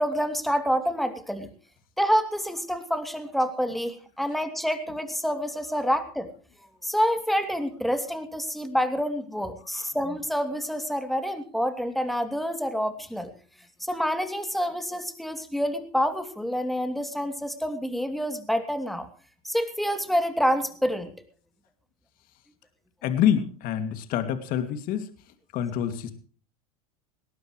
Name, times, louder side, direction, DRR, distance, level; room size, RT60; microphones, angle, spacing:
voice 1, 0.0-1.5 2.0-6.3 6.8-13.3 13.8-19.1 19.4-21.1, equal, ahead, 7 dB, 2.8 m, -27 dB
voice 2, 23.0-25.1 25.5-26.1, left 9 dB, 50° left, 9 dB, 2.5 m, -26 dB
20.0 x 17.5 x 3.2 m, 0.41 s
hypercardioid pair, 100°, 19 cm